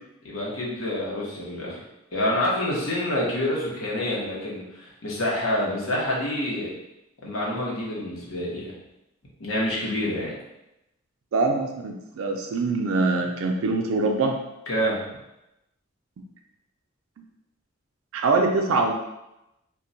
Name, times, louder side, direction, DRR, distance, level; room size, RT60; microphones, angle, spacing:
voice 1, 0.2-1.8 2.1-6.7 7.2-8.7 9.4-10.3 14.7-15.0, left 1 dB, 75° left, -4 dB, 0.9 m, -27 dB
voice 2, 11.3-14.3 18.1-18.9, right 3 dB, 85° right, 2 dB, 0.4 m, -23 dB
2.2 x 2.2 x 3.8 m, 0.90 s
head